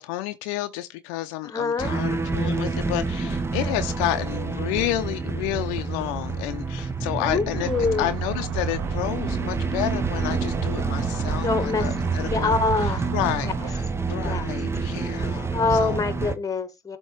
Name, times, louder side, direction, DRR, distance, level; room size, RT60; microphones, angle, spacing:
voice 1, 0.0-7.7 8.0-12.6 12.8-16.0, left 14 dB, 70° left, 0.6 m, -30 dB
voice 2, 1.4-2.0 3.6-3.7 7.2-8.1 11.4-11.9 12.3-13.1 14.2-14.5 15.5-17.0, left 4 dB, 20° left, 1.2 m, -25 dB
sound 1, 1.8-16.4, right 4 dB, 15° right, 0.7 m, -28 dB
sound 2, 7.5-13.7, right 11 dB, 90° right, 0.5 m, -37 dB
7.3 x 3.0 x 4.5 m
hypercardioid pair, 70°, 15 cm